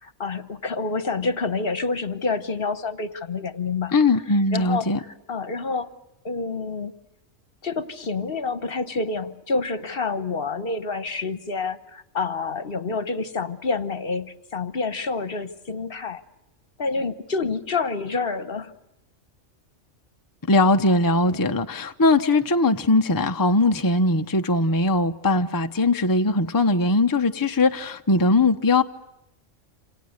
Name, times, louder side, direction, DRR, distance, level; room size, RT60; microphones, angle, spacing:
voice 1, 0.0-3.9 4.3-5.9 6.2-6.9 7.6-16.2 16.8-18.7 21.2-21.4, left 4 dB, 50° left, 1.3 m, -28 dB
voice 2, 3.9-5.0 20.5-28.8, left 2 dB, 20° left, 0.8 m, -20 dB
28.0 x 27.5 x 6.6 m
omnidirectional pair, 1.3 m